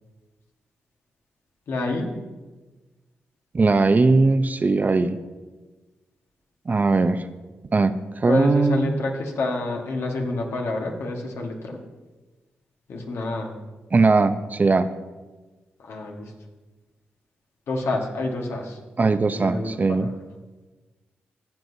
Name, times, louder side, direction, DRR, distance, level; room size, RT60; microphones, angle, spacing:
voice 1, 1.7-2.1 8.3-11.8 12.9-13.5 15.8-16.3 17.7-18.8 19.3-20.1, left 2 dB, 70° left, 1 dB, 1.5 m, -28 dB
voice 2, 3.5-5.2 6.7-7.2 7.7-8.9 13.9-14.9 19.0-20.1, right 3 dB, 40° right, 11 dB, 0.6 m, -19 dB
15.0 x 7.8 x 2.7 m, 1.2 s
supercardioid pair, 45°, 5 cm